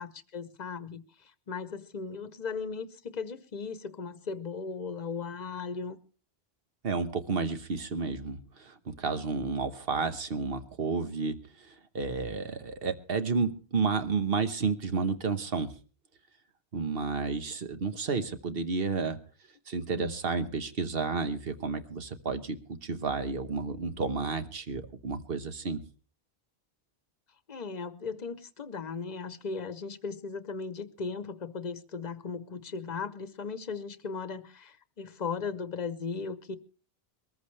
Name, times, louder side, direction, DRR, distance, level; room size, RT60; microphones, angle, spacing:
voice 1, 0.0-6.0 20.0-20.1 27.5-36.6, left 5 dB, 45° left, 0.9 m, -37 dB
voice 2, 6.8-15.7 16.7-19.2 19.7-25.8, right 4 dB, 65° right, 1.3 m, -31 dB
22.0 x 14.0 x 3.2 m
omnidirectional pair, 1.0 m